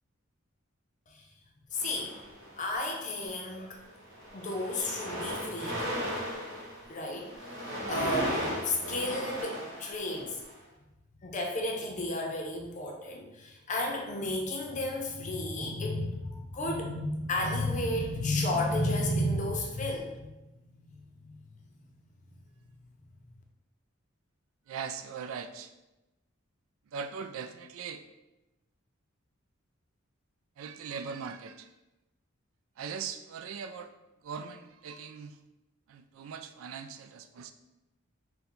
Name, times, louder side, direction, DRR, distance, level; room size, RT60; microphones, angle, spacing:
voice 1, 1.7-2.1 2.6-3.8 4.3-6.1 6.9-10.4 11.2-20.3 21.2-21.4, left 1 dB, 35° left, 1 dB, 0.6 m, -32 dB
sound 1, 1.7-2.7 3.5-3.7 4.0-10.5, equal, 60° right, 1.2 m, -36 dB
voice 2, 24.7-25.7 26.9-28.0 30.6-31.7 32.8-33.9 34.2-35.4 35.9-37.5, right 6 dB, 85° right, 10 dB, 0.3 m, -40 dB
3.8 x 2.2 x 4.4 m, 0.99 s
head